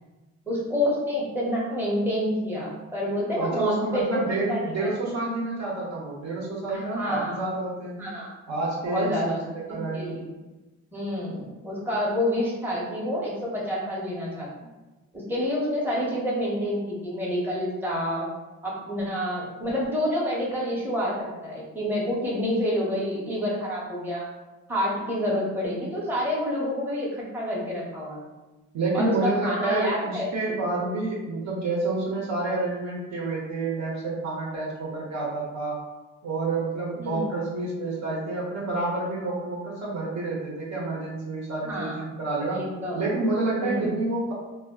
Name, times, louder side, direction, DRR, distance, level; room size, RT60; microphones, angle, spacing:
voice 1, 0.5-4.2 4.5-4.9 6.7-7.4 8.0-8.3 8.9-9.4 9.7-10.2 10.9-14.5 15.1-18.3 18.6-24.2 24.7-28.2 28.9-30.3 37.0-37.2 41.6-42.0 42.5-43.0 43.6-43.9, equal, 5° right, -5 dB, 0.8 m, -28 dB
voice 2, 3.4-8.0 8.5-9.4 9.7-10.2 28.7-35.8 36.2-42.6 42.9-44.3, right 2 dB, 65° right, -5 dB, 1.0 m, -29 dB
2.2 x 2.1 x 3.5 m, 1.1 s
cardioid pair, 90°, 30 cm